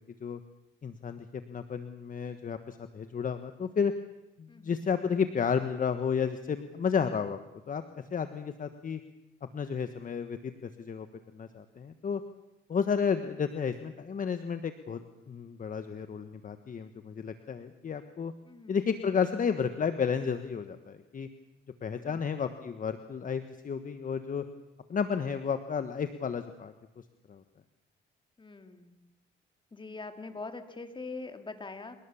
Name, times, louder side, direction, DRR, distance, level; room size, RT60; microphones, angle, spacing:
voice 1, 0.8-3.9 4.4-7.4 7.7-7.8 8.1-9.0 9.5-11.1 11.3-12.2 12.7-15.0 15.3-18.3 18.7-21.3 21.8-24.5 24.9-26.7 27.3-27.4, left 6 dB, 40° left, 9 dB, 1.3 m, -32 dB
voice 2, 4.5-4.8 18.5-18.8 22.0-22.2 28.4-28.9 29.7-32.0, left 3 dB, 25° left, 7 dB, 2.6 m, -43 dB
27.5 x 18.5 x 7.2 m, 0.96 s
cardioid pair, 90°, 20 cm